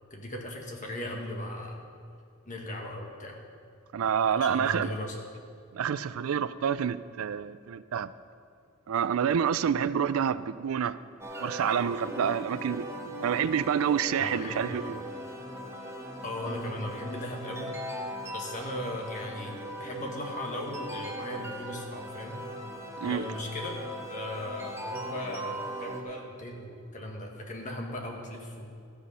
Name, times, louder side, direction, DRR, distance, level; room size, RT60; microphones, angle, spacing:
voice 1, 0.1-1.8 2.4-3.4 4.4-5.3 14.2-14.9 16.2-17.7 18.3-22.4 23.0-23.8 24.1-28.7, left 1 dB, 40° left, 1.6 m, -37 dB
voice 2, 3.9-4.9 5.7-8.1 8.9-11.0 11.4-12.8 13.2-15.0 23.0-23.2, right 7 dB, 85° right, 0.4 m, -28 dB
sound 1, 11.2-26.0, equal, 15° right, 1.2 m, -39 dB
13.0 x 7.9 x 5.6 m
head